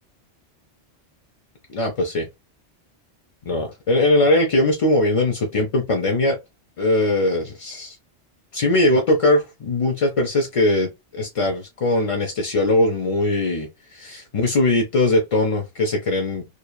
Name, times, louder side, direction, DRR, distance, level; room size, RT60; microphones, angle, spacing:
voice 1, 1.7-2.3 3.5-6.4 6.8-8.0 8.5-16.5, left 2 dB, 45° left, 0.4 m, -20 dB
3.0 x 2.3 x 2.2 m
omnidirectional pair, 1.2 m